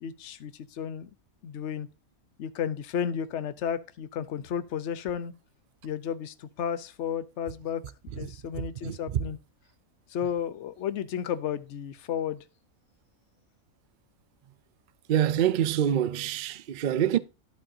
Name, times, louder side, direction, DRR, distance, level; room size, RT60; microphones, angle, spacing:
voice 1, 0.0-1.1 1.4-1.9 2.4-5.3 5.8-9.4 10.1-12.4, left 8 dB, 60° left, 0.9 m, -33 dB
voice 2, 15.1-17.2, right 10 dB, 70° right, 0.4 m, -25 dB
11.5 x 7.8 x 2.7 m
omnidirectional pair, 1.5 m